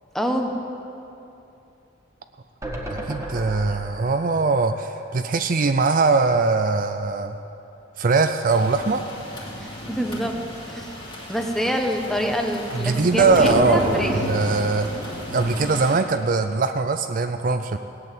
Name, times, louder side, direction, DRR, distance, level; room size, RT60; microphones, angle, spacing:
voice 1, 0.1-0.5 9.6-10.4 10.7-11.0 11.3-14.1, equal, ahead, 3 dB, 1.0 m, -26 dB
sound 1, 2.6-5.9 6.2-6.3 6.5-6.6, right 1 dB, 15° right, 1.4 m, -35 dB
voice 2, 2.9-7.4 8.0-9.0 12.7-14.9 15.3-17.8, right 3 dB, 40° right, 8 dB, 0.4 m, -21 dB
sound 2, 8.5-15.9, equal, 25° left, 2.8 m, -30 dB
18.0 x 7.9 x 9.1 m, 2.8 s
head